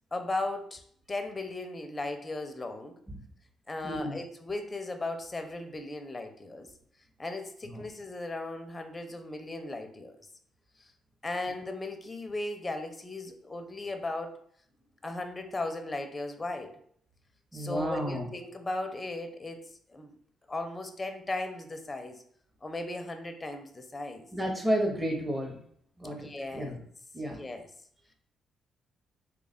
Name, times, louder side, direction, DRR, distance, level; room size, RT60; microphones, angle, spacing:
voice 1, 0.1-0.8 1.1-3.0 3.7-6.7 7.2-10.3 11.2-14.4 15.0-16.8 17.5-19.6 19.9-20.1 20.5-22.2 22.6-24.2 26.0-26.8 27.4-27.7, left 2 dB, 20° left, 6 dB, 0.5 m, -37 dB
voice 2, 3.8-4.2 7.6-7.8 17.5-18.3 24.3-25.6 26.0-26.8 27.1-27.4, equal, 15° right, 1 dB, 0.9 m, -32 dB
3.2 x 2.4 x 4.1 m, 0.62 s
cardioid pair, 90°, 0 cm